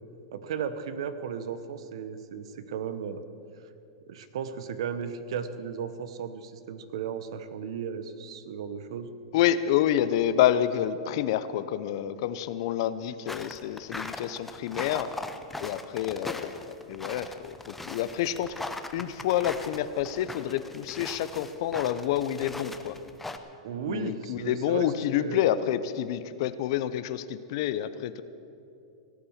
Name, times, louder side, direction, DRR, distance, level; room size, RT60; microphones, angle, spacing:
voice 1, 0.3-3.2 4.1-9.1 23.6-25.5, right 7 dB, 70° right, 12 dB, 1.0 m, -35 dB
voice 2, 9.3-15.1 15.6-18.5 18.9-22.9 23.9-28.2, left 11 dB, 55° left, 14 dB, 0.7 m, -28 dB
sound 1, 13.3-23.4, left 2 dB, 5° left, 0.6 m, -40 dB
17.0 x 8.6 x 7.3 m, 2.7 s
supercardioid pair, 150°, 3 cm